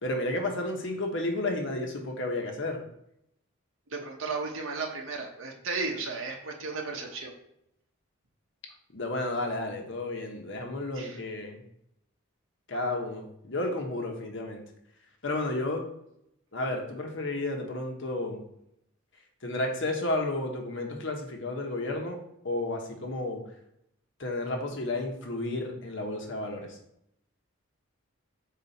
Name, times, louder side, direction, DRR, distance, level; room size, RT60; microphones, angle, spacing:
voice 1, 0.0-2.8 8.9-11.6 12.7-14.6 15.2-15.9 16.5-18.4 19.4-22.2 22.4-23.4 24.2-26.8, left 2 dB, 60° left, 2 dB, 1.1 m, -32 dB
voice 2, 3.9-7.3 10.9-11.2 12.7-13.0, right 4 dB, 65° right, 1 dB, 0.9 m, -35 dB
5.8 x 4.4 x 4.1 m, 0.77 s
head